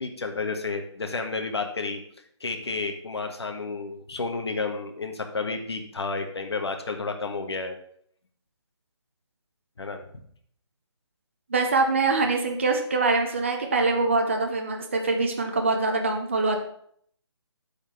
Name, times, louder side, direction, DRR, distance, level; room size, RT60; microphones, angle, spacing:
voice 1, 0.0-2.0 2.4-7.8 9.8-10.0, left 4 dB, 60° left, 5 dB, 1.5 m, -31 dB
voice 2, 11.5-16.6, right 3 dB, 25° right, 3 dB, 0.7 m, -24 dB
8.4 x 4.3 x 6.7 m, 0.64 s
hypercardioid pair, 180°, 15 cm